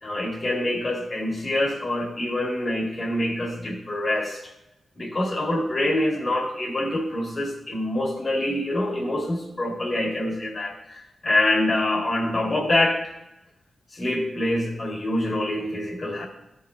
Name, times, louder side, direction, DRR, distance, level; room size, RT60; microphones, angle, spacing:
voice 1, 0.0-4.4 5.0-13.0 13.9-16.3, left 1 dB, 40° left, -1 dB, 2.1 m, -25 dB
14.0 x 5.6 x 3.0 m, 0.90 s
cardioid pair, 65°, 0 cm